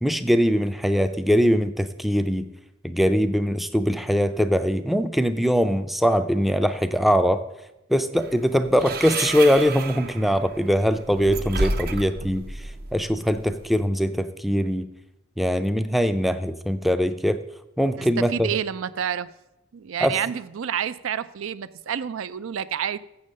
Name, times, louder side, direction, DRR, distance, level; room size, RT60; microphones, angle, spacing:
voice 1, 0.0-2.5 2.8-7.4 7.9-14.9 15.4-17.4 17.8-18.5 20.0-20.2, equal, ahead, 10 dB, 0.4 m, -22 dB
sound 1, 8.2-13.8, right 2 dB, 50° right, 0.6 m, -32 dB
voice 2, 18.0-19.3 19.7-23.0, right 8 dB, 85° right, 15 dB, 0.4 m, -29 dB
7.4 x 7.1 x 6.4 m, 0.93 s
head